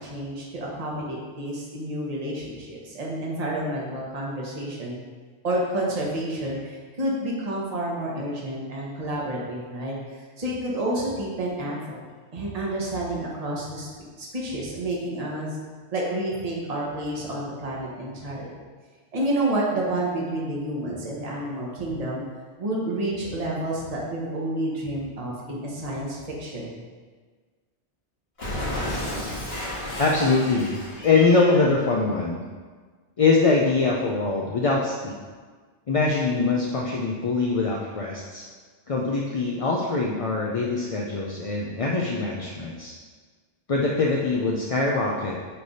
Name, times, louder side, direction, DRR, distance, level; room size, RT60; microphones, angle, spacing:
voice 1, 0.0-5.0 5.4-11.8 12.3-13.9 14.2-15.6 15.9-18.5 19.1-22.2 22.6-26.8, right 1 dB, 35° right, -4 dB, 1.2 m, -29 dB
Cat, 28.4-31.7, left 1 dB, 60° left, 1.8 m, -32 dB
voice 2, 30.0-32.4 33.2-35.2 35.9-38.4 38.9-42.9 43.7-45.4, left 3 dB, 45° left, -2 dB, 0.5 m, -23 dB
8.8 x 3.3 x 4.1 m, 1.5 s
omnidirectional pair, 1.2 m